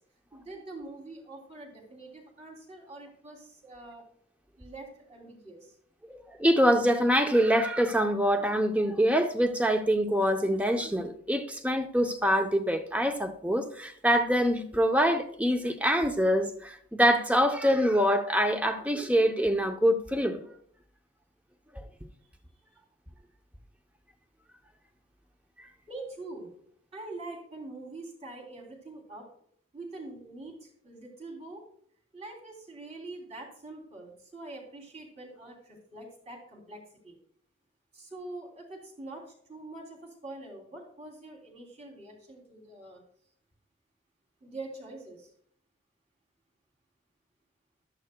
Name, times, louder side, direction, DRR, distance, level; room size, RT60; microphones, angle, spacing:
voice 1, 0.3-4.0 4.6-5.8 22.2-22.3 25.9-26.5 26.9-29.3 29.7-31.6 32.1-37.2 37.9-43.0 44.4-45.3, right 2 dB, 35° right, 3.2 m, -44 dB
voice 2, 6.1-20.5 21.7-21.8, equal, 5° right, 0.7 m, -25 dB
14.5 x 12.0 x 2.2 m
head